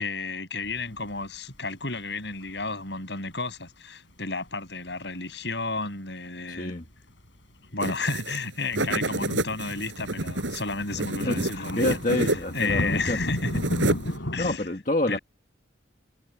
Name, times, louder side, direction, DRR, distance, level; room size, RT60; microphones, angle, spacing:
voice 1, 0.0-6.7 7.7-12.0 12.5-13.5 14.3-14.6 15.1-15.2, left 3 dB, 70° left, 7.8 m, -32 dB
sound 1, 0.6-1.2 1.5-1.9 2.3-2.5 4.1-4.2 4.5-4.9 6.9-7.0 7.3-7.4 7.7-7.8 8.0-8.1 9.6-14.6, equal, 85° left, 7.8 m, -33 dB
voice 2, 6.5-6.8 11.2-13.2 13.8-15.2, left 1 dB, 45° left, 1.7 m, -28 dB
sound 2, 7.8-8.4 8.7-12.7 13.0-14.2, right 1 dB, 90° right, 7.2 m, -29 dB
head